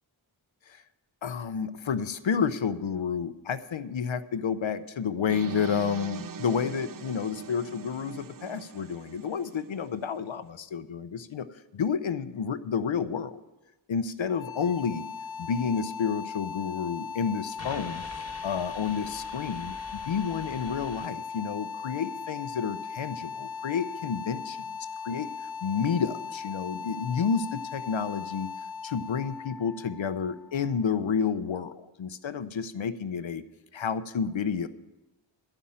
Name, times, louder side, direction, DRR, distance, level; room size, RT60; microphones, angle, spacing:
voice 1, 1.2-11.5 11.7-13.4 13.9-15.1 15.4-18.0 18.4-24.7 25.0-25.3 25.6-28.5 28.8-33.4 33.7-34.7, left 6 dB, 65° left, 13 dB, 0.7 m, -30 dB
sound 1, 5.3-10.2, right 7 dB, 45° right, 0.4 m, -42 dB
sound 2, 14.2-31.2, left 5 dB, 10° left, 1.0 m, -38 dB
sound 3, 17.6-21.1, left 2 dB, 30° left, 1.5 m, -45 dB
12.0 x 5.6 x 8.6 m, 1.1 s
wide cardioid pair, 40°, 49 cm